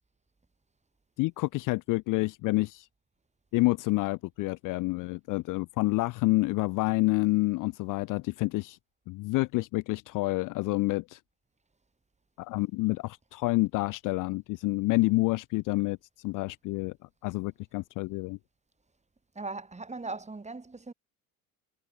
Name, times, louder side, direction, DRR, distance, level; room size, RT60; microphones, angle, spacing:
voice 1, 1.2-2.9 3.5-8.8 9.1-11.2 12.4-16.0 16.2-16.9 17.2-18.4, left 22 dB, 50° left, 0.5 m, -28 dB
voice 2, 19.3-20.9, right 3 dB, 15° right, 3.1 m, -39 dB
hypercardioid pair, 70°, 43 cm